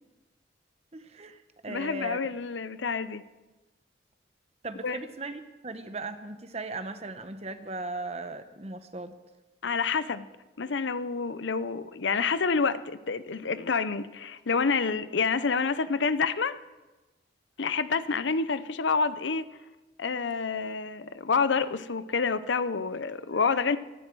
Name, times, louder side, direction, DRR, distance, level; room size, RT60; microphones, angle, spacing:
voice 1, 0.9-2.2 4.6-9.1, right 2 dB, 35° right, 1.0 m, -38 dB
voice 2, 1.7-3.2 4.8-5.0 9.6-10.3 10.6-16.6 17.6-19.5 20.0-23.8, left 5 dB, 80° left, 0.7 m, -28 dB
24.0 x 11.5 x 4.7 m
head